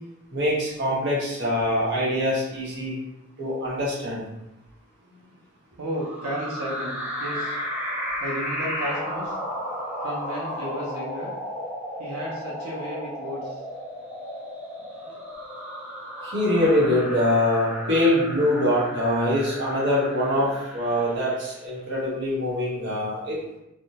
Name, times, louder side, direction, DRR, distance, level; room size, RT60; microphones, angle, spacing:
voice 1, 0.3-2.9 3.4-4.2 16.2-23.4, left 1 dB, 50° right, -6 dB, 0.9 m, -24 dB
voice 2, 5.8-7.6 8.2-9.4 10.0-11.3 12.0-13.6 15.0-15.2, equal, 90° right, -5 dB, 0.6 m, -33 dB
sound 1, 5.9-21.6, equal, 5° right, 0.3 m, -34 dB
2.5 x 2.0 x 2.8 m, 0.87 s
head